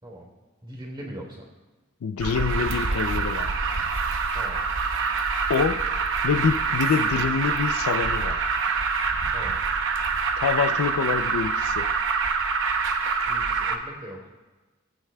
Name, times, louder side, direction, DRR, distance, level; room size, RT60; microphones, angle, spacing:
voice 1, 0.6-1.4 4.3-4.7 9.3-9.6 13.3-14.2, right 1 dB, 20° right, -1 dB, 3.2 m, -40 dB
voice 2, 2.0-3.5 5.5-5.9 6.2-8.4 10.4-11.9, left 6 dB, 70° left, 11 dB, 0.4 m, -26 dB
Alarm, 2.2-13.7, right 5 dB, 60° right, 0.8 m, -25 dB
20.0 x 9.0 x 2.2 m, 1.2 s
head